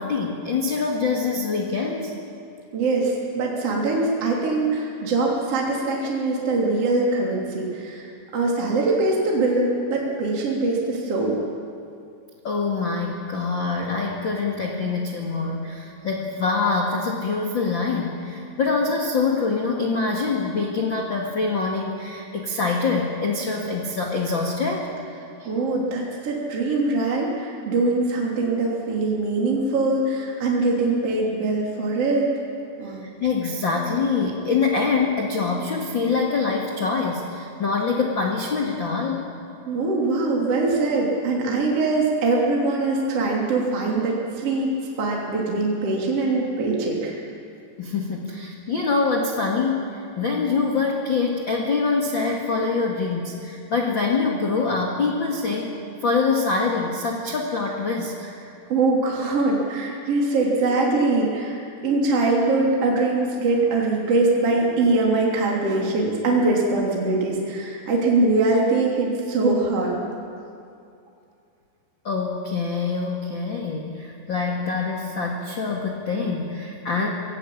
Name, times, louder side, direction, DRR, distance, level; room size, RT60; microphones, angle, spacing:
voice 1, 0.0-2.1 12.4-24.9 25.4-25.5 32.8-39.2 47.8-49.9 50.2-55.7 56.0-58.3 72.0-77.1, left 4 dB, 40° left, -1 dB, 1.8 m, -25 dB
voice 2, 2.7-8.1 8.3-11.4 25.5-32.5 32.8-33.0 39.7-44.7 45.0-47.1 58.7-70.0, right 3 dB, 35° right, -3 dB, 3.6 m, -22 dB
26.0 x 17.5 x 8.6 m, 2.5 s
omnidirectional pair, 5.1 m